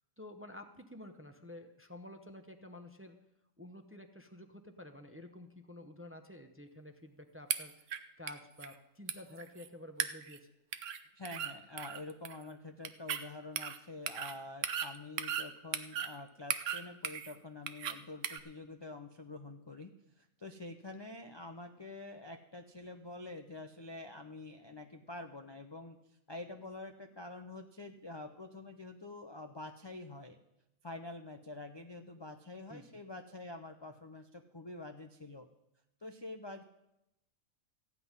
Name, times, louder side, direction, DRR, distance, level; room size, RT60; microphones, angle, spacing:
voice 1, 0.2-3.2 3.6-10.5 32.7-33.0, left 1 dB, 10° right, 6 dB, 0.7 m, -51 dB
sound 1, 7.5-8.0 8.3-8.4 8.6-8.7 9.1-9.7 10.0-10.4 10.7-11.0 11.2-11.5 11.8-12.4 12.8-13.2 13.6-13.8 14.1-14.3 14.6-15.5 15.7-16.1 16.5-17.3 17.7-17.9 18.2-18.4, right 9 dB, 70° right, 1.1 m, -36 dB
voice 2, 11.1-19.9 20.2-26.0 26.3-30.4 30.8-35.5 36.0-36.6, left 2 dB, 30° left, 6 dB, 0.5 m, -47 dB
15.0 x 5.9 x 9.6 m, 0.87 s
omnidirectional pair, 1.4 m